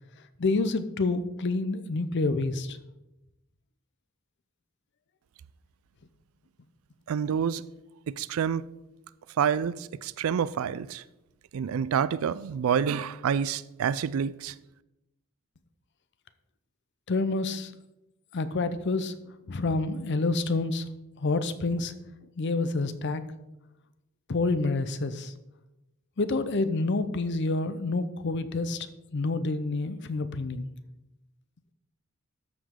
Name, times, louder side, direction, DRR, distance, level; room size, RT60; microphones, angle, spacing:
voice 1, 0.4-2.8 17.1-17.7 18.3-19.1 19.5-20.8 21.2-21.9 22.4-23.2 24.3-25.3 26.2-28.9 29.1-30.7, left 3 dB, 55° left, 0.6 m, -28 dB
voice 2, 7.1-7.6 8.1-8.6 9.4-11.0 11.5-14.5, right 7 dB, 80° right, 0.4 m, -28 dB
13.0 x 5.0 x 3.7 m
head